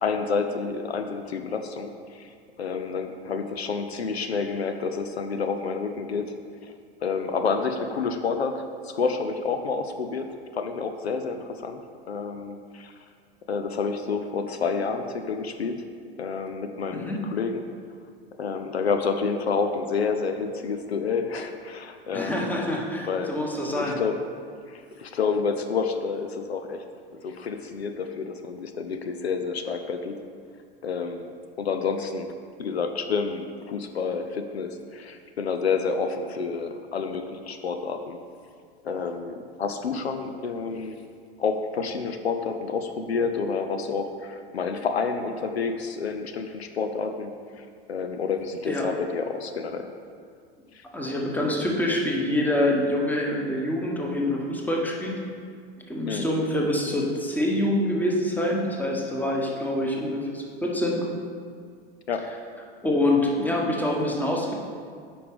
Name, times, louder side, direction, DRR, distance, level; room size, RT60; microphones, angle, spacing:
voice 1, 0.0-2.3 2.6-6.3 6.6-6.7 7.0-10.3 10.5-11.8 12.1-12.9 13.5-15.8 16.2-17.6 18.4-22.5 23.0-23.3 23.7-24.2 24.7-26.8 27.2-30.2 30.8-32.3 32.6-38.2 38.8-41.0 41.4-49.9 50.7-50.8 56.1-56.3 62.1-62.2, left 5 dB, 85° left, 7 dB, 0.5 m, -29 dB
voice 2, 22.1-24.0 48.7-48.9 50.9-55.1 55.9-61.1 62.8-64.6, left 1 dB, 5° left, -1 dB, 1.1 m, -26 dB
8.5 x 5.1 x 3.6 m, 2.1 s
figure-of-eight pair, 90°, 31 cm